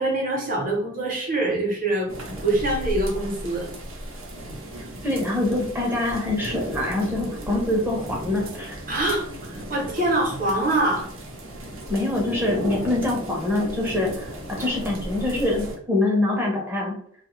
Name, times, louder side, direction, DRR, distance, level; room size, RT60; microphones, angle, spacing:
voice 1, 0.0-3.7 8.9-11.1, right 2 dB, 40° right, -1 dB, 0.9 m, -24 dB
sound 1, 2.1-15.8, right 1 dB, 70° right, 0.7 m, -35 dB
voice 2, 5.0-8.8 11.9-17.0, left 2 dB, 10° right, -2 dB, 0.6 m, -25 dB
2.6 x 2.3 x 3.0 m, 0.62 s
head